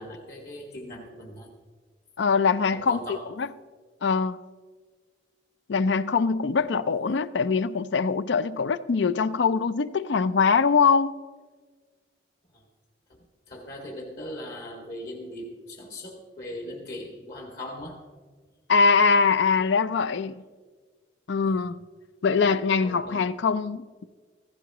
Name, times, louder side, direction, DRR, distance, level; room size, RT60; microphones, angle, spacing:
voice 1, 0.0-1.5 2.7-3.3 6.6-6.7 12.5-12.6 13.1-18.0 21.5-21.6 22.4-22.6 22.8-23.2, left 1 dB, 55° left, 2.0 m, -39 dB
voice 2, 2.2-3.5 4.0-4.4 5.7-11.1 18.7-20.4 21.3-21.8 22.2-24.0, left 5 dB, 75° left, 0.5 m, -23 dB
15.5 x 15.0 x 3.0 m
head